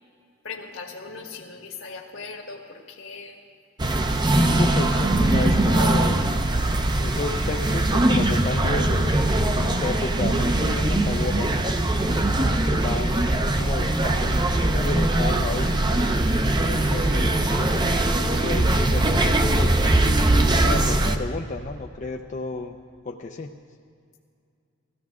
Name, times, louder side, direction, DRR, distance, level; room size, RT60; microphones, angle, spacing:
voice 1, 0.4-3.4, left 4 dB, 75° left, 2 dB, 1.7 m, -39 dB
sound 1, 3.8-21.2, right 1 dB, 20° right, 0.6 m, -21 dB
voice 2, 4.4-6.3 7.0-9.1 9.5-11.5 12.7-15.8 16.6-19.8 20.6-22.8 23.0-23.6, left 3 dB, 40° left, 3 dB, 0.5 m, -32 dB
17.0 x 15.0 x 3.7 m, 2.4 s
head